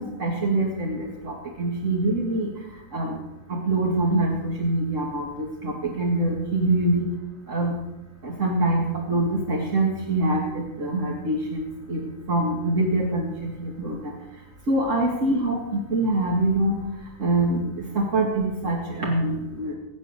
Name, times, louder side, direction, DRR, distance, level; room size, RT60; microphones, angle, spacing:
voice 1, 0.0-2.5 2.9-3.2 3.5-7.0 7.5-7.8 8.2-14.1 14.7-16.7 17.2-19.7, right 2 dB, 80° right, -2 dB, 2.7 m, -24 dB
21.5 x 8.5 x 6.7 m, 0.97 s
omnidirectional pair, 1.3 m